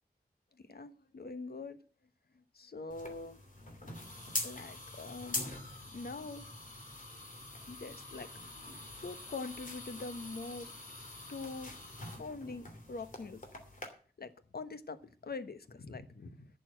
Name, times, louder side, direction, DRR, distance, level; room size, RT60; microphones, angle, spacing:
voice 1, 0.7-1.8 2.5-3.4 4.4-5.5 5.9-6.4 7.7-8.3 9.0-10.7 11.3-11.7 12.2-13.4 14.2-15.0 15.2-16.5, left 3 dB, 70° left, 1.1 m, -43 dB
sound 1, 2.9-13.9, left 2 dB, 50° left, 2.8 m, -44 dB
11.0 x 7.0 x 7.7 m
wide cardioid pair, 90°, 17 cm